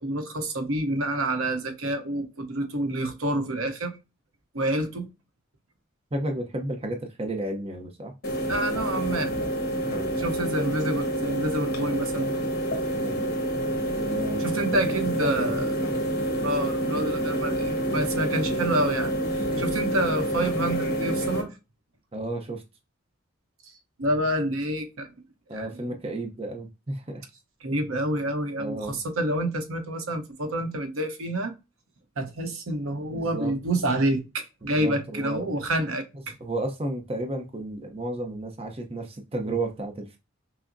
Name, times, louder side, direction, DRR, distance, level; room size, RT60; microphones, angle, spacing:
voice 1, 0.0-4.0 4.5-5.1 8.5-9.3 10.2-12.3 14.4-15.7 16.4-21.6 24.0-25.1 25.5-25.8 27.6-31.5 32.2-36.3, right 1 dB, 80° right, 0.9 m, -28 dB
voice 2, 6.1-8.1 9.8-10.2 13.0-13.2 14.0-14.9 15.4-15.6 19.5-19.7 22.1-22.6 25.5-27.2 28.6-29.0 33.1-33.5 34.6-35.4 36.4-40.2, right 1 dB, 30° right, 0.6 m, -33 dB
sound 1, 8.2-21.4, right 1 dB, 45° left, 1.2 m, -28 dB
5.7 x 2.0 x 2.6 m
head